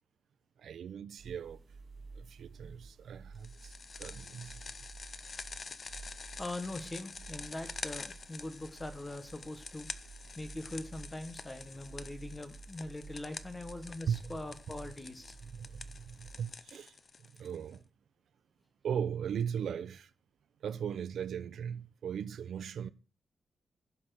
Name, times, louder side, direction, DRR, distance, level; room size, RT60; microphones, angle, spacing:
voice 1, 0.6-1.6 2.1-3.7 4.0-4.6 14.1-14.4 14.8-14.9 15.4-17.8 18.8-20.1 20.6-22.9, right 8 dB, 90° right, 0.7 m, -38 dB
sound 1, 1.2-16.6, right 4 dB, 45° right, 1.6 m, -52 dB
sound 2, 3.4-17.8, left 4 dB, 35° left, 0.7 m, -47 dB
voice 2, 6.4-9.9 10.3-15.3, left 2 dB, 15° left, 1.3 m, -42 dB
16.0 x 5.7 x 6.4 m
wide cardioid pair, 175°, 0 cm